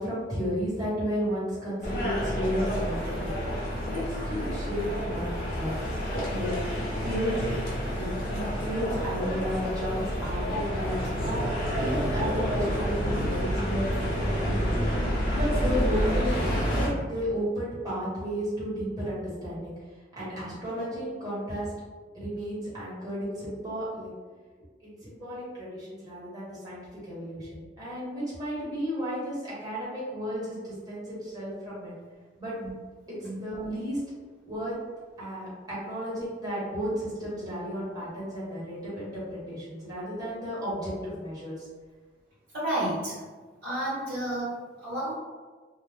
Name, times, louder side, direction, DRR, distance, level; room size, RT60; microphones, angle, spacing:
voice 1, 0.0-3.3 3.9-4.0 4.2-5.7 6.3-6.5 7.0-11.0 11.2-13.9 14.2-14.9 15.3-16.4 16.7-19.7 20.2-21.7 22.1-24.1 24.8-31.9 32.4-32.5 33.4-34.0 34.4-34.7 35.2-41.7, equal, 20° right, -10 dB, 1.1 m, -33 dB
sound 1, 1.8-16.9, equal, 55° left, 0.7 m, -29 dB
voice 2, 42.5-43.2 43.6-45.1, right 1 dB, 85° right, -10 dB, 1.0 m, -31 dB
2.3 x 2.0 x 3.3 m, 1.4 s
head